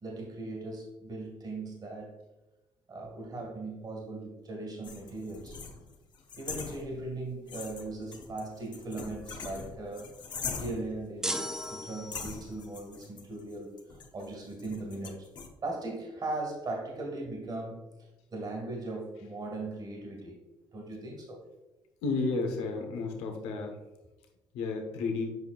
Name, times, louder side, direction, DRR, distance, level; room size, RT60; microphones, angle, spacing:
voice 1, 0.0-2.2 2.9-5.6 6.4-10.2 10.6-15.3 15.6-17.8 18.3-20.4 20.7-21.5, right 2 dB, 45° right, 0 dB, 2.0 m, -39 dB
sound 1, 4.8-7.2 7.5-11.0 11.6-11.7 12.1-15.5, left 5 dB, 50° left, 1.0 m, -42 dB
sound 2, 11.2-12.6, equal, 5° right, 0.6 m, -36 dB
voice 2, 22.0-23.8 24.5-25.4, left 3 dB, 85° left, 3 dB, 1.1 m, -32 dB
7.8 x 5.3 x 2.5 m, 1.0 s
supercardioid pair, 70°, 10 cm